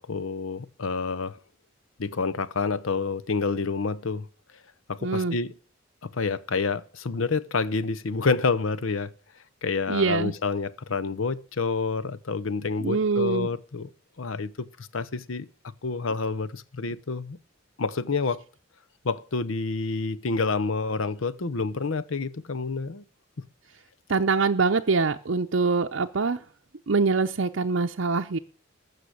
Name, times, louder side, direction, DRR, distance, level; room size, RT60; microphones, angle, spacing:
voice 1, 0.0-1.4 2.0-4.3 4.9-5.5 6.1-9.1 9.6-13.9 14.2-15.5 15.8-17.4 17.8-18.4 19.0-23.0 23.4-23.5, left 4 dB, 75° left, 0.7 m, -28 dB
voice 2, 5.0-5.4 9.9-10.3 12.8-13.5 24.1-26.4 26.9-28.4, right 4 dB, 65° right, 0.6 m, -24 dB
14.5 x 6.8 x 8.0 m
head